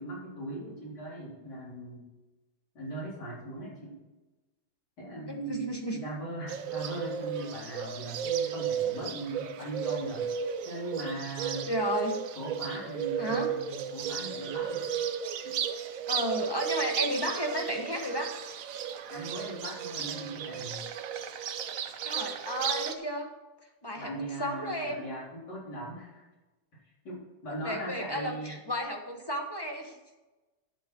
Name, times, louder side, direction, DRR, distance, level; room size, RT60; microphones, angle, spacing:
voice 1, 0.0-2.0 2.7-3.9 5.0-10.2 10.6-11.7 12.4-14.9 15.4-15.6 19.1-20.8 24.0-26.2 27.0-28.6, right 1 dB, 70° left, -6 dB, 4.3 m, -39 dB
voice 2, 5.3-6.0 11.6-12.1 13.2-13.5 16.1-18.3 22.0-23.3 23.8-24.1 24.4-25.0 27.6-30.2, equal, 15° left, 1 dB, 1.2 m, -33 dB
Bird, 6.5-23.0, right 8 dB, 60° right, 0.9 m, -34 dB
11.0 x 7.7 x 4.6 m, 1.1 s
omnidirectional pair, 1.9 m